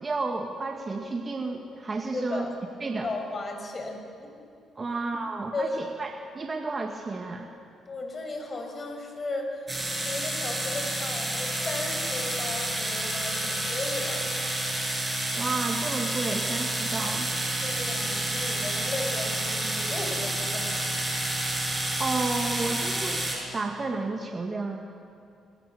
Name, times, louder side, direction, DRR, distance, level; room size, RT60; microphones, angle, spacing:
voice 1, 0.0-2.5 2.8-3.1 4.8-7.5 15.3-17.3 22.0-23.2 23.5-24.8, right 3 dB, 30° right, 2 dB, 2.0 m, -31 dB
voice 2, 2.1-2.5 3.0-4.3 4.8-5.0 5.5-5.8 7.9-9.7 10.0-14.3 17.6-21.0, left 2 dB, 35° left, 3 dB, 6.1 m, -35 dB
sound 1, 9.7-23.4, right 1 dB, 10° right, 7.0 m, -29 dB
30.0 x 22.0 x 7.2 m, 2.6 s
cardioid pair, 90°, 0 cm